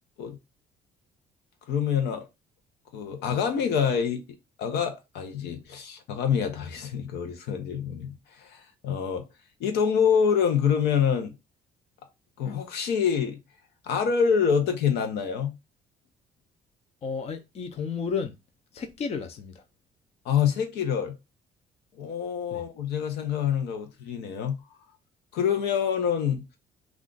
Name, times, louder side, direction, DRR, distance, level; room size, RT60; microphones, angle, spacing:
voice 1, 1.7-2.2 2.9-4.2 4.6-9.2 9.6-11.3 12.4-13.4 13.8-15.5 20.2-21.1 22.0-24.6 25.3-26.4, left 7 dB, 80° left, 0.8 m, -26 dB
voice 2, 17.0-18.3 18.7-19.6 22.5-22.6, left 6 dB, 40° left, 0.5 m, -32 dB
2.4 x 2.4 x 3.8 m
cardioid pair, 110°, 17 cm